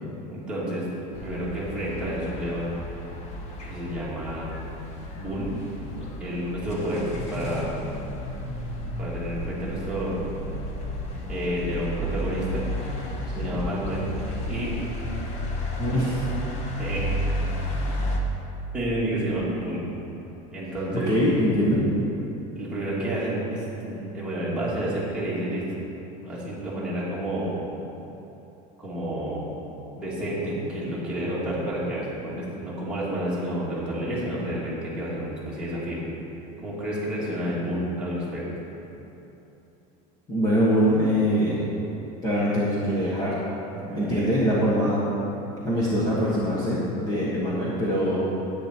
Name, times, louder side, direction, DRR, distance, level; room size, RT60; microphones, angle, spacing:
voice 1, 0.3-0.9 1.2-2.7 3.6-4.5 5.1-5.6 6.0-7.9 9.0-10.3 11.3-12.7 13.4-14.1 14.4-14.7 16.8-17.0 18.7-19.9 20.5-21.1 22.6-25.6 26.2-27.6 28.8-29.4 30.0-36.0 36.6-38.5 43.7-44.2, right 1 dB, 5° right, -9 dB, 2.4 m, -30 dB
sound 1, 1.1-18.2, left 1 dB, 35° left, 1.1 m, -32 dB
voice 2, 15.8-16.2 21.1-21.8 40.3-41.7 42.2-43.3 43.9-45.0 45.6-48.2, equal, 20° left, -8 dB, 1.4 m, -23 dB
10.5 x 9.4 x 4.5 m, 3.0 s
cardioid pair, 175°, 19 cm